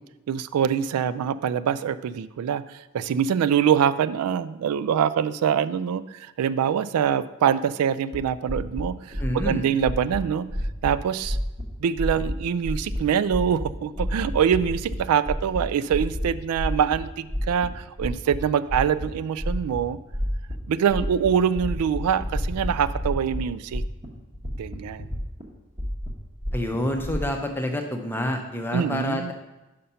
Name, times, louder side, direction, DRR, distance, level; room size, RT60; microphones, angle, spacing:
voice 1, 0.3-10.5 10.8-11.4 11.8-20.0 20.7-23.8 24.6-25.1 28.7-29.3, right 8 dB, 90° right, 16 dB, 0.3 m, -24 dB
sound 1, 8.1-8.2 8.5-8.8 9.1-9.5 9.8-10.2 10.5-10.9 11.2-11.6 12.0-12.3 12.6-13.0 13.3-13.7 13.9-15.0 15.2-15.6 15.9-16.3 16.6-17.0 17.3-18.4 18.7-19.0 19.4-19.8 20.1-20.5 20.8-21.3 21.5-23.4 23.7-24.1 24.3-25.4 25.8-27.2, equal, 25° right, 1.0 m, -29 dB
voice 2, 9.2-9.7 26.5-29.3, left 1 dB, 10° left, 4 dB, 0.6 m, -28 dB
5.6 x 5.1 x 5.6 m, 1.0 s
head